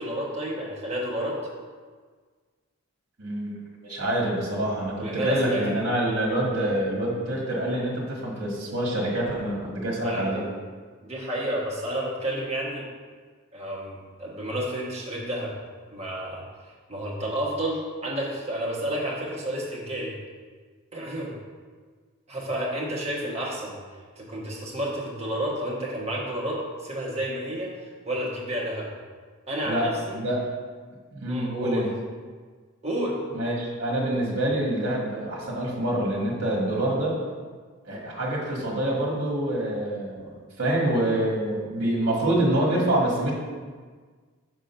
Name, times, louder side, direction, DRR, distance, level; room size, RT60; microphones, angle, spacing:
voice 1, 0.0-1.4 5.0-5.8 10.0-10.4 11.0-12.8 13.5-15.5 15.9-16.4 16.9-20.1 20.9-21.3 22.3-23.8 24.2-27.7 28.0-28.9 29.5-30.1 31.3-31.9 32.8-33.2, right 1 dB, 30° right, -4 dB, 1.2 m, -30 dB
voice 2, 3.2-3.5 3.8-10.4 29.7-30.4 31.1-31.9 33.3-37.2 37.9-43.3, right 1 dB, 50° right, -3 dB, 1.5 m, -26 dB
6.3 x 3.7 x 5.5 m, 1.5 s
head